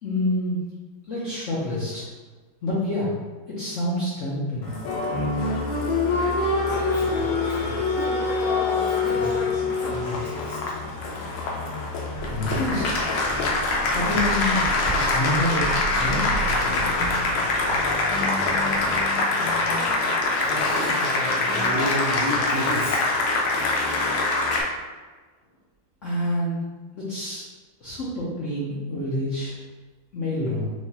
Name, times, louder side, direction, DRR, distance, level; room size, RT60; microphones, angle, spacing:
voice 1, 0.0-0.6 1.1-2.0 2.6-3.1 3.6-4.7 12.3-13.0 13.9-14.6 15.1-15.7 15.9-16.2 26.0-26.6 26.9-27.4 27.8-29.5 30.1-30.7, left 1 dB, 65° left, -9 dB, 0.7 m, -27 dB
Applause, 4.6-24.6, left 3 dB, 90° left, 1.4 m, -24 dB
voice 2, 6.7-8.1 8.6-9.4 9.9-10.6 20.3-23.1, equal, 75° right, -6 dB, 0.7 m, -33 dB
sound 1, 12.1-19.2, right 4 dB, 50° right, 1.2 m, -35 dB
4.7 x 2.2 x 2.8 m, 1.3 s
omnidirectional pair, 2.2 m